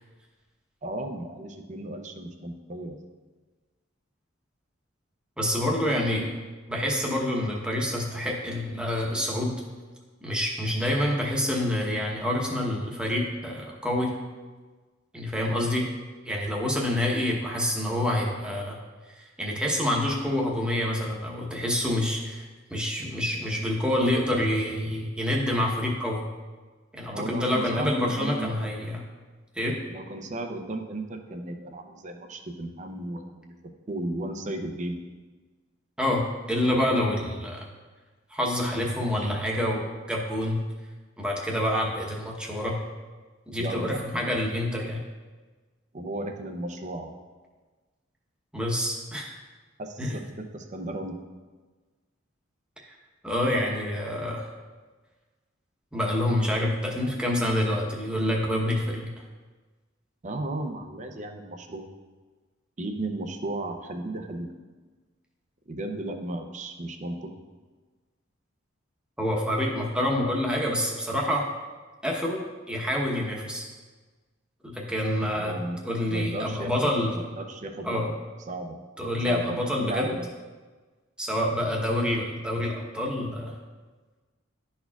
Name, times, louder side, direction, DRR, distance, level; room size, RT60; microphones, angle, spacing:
voice 1, 0.8-3.0 27.1-28.7 29.9-35.0 43.6-44.3 45.9-47.1 49.8-51.2 60.2-61.9 62.8-64.5 65.7-67.3 75.3-75.8 76.1-78.0 78.5-78.8 79.2-80.3, right 1 dB, 35° right, 5 dB, 0.6 m, -35 dB
voice 2, 5.4-6.3 6.7-9.6 10.2-14.1 15.1-15.9 16.2-18.8 19.2-26.2 26.9-29.0 29.5-29.8 36.0-37.7 38.3-40.6 41.2-42.8 43.5-45.0 48.5-49.3 50.0-50.2 53.2-54.5 55.9-59.1 69.2-71.5 72.0-73.7 74.6-75.6 75.9-77.1 77.8-78.1 79.0-80.1 81.2-83.5, left 1 dB, 5° right, -2 dB, 0.9 m, -27 dB
11.5 x 4.3 x 2.3 m, 1.3 s
head